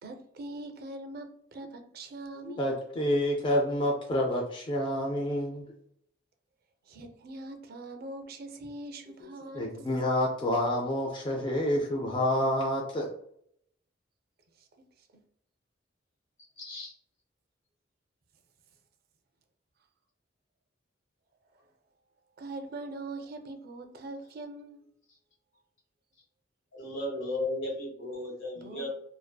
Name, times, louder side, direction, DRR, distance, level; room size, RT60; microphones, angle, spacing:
voice 1, 0.0-2.8 6.9-9.9 14.6-15.2 22.4-24.8 28.6-28.9, right 2 dB, 55° right, 0.4 m, -42 dB
voice 2, 2.4-5.7 9.2-9.3 9.5-13.1, left 1 dB, 25° left, 0.3 m, -28 dB
voice 3, 16.6-16.9 26.7-28.9, left 1 dB, 85° left, 1.1 m, -35 dB
2.6 x 2.4 x 2.2 m
head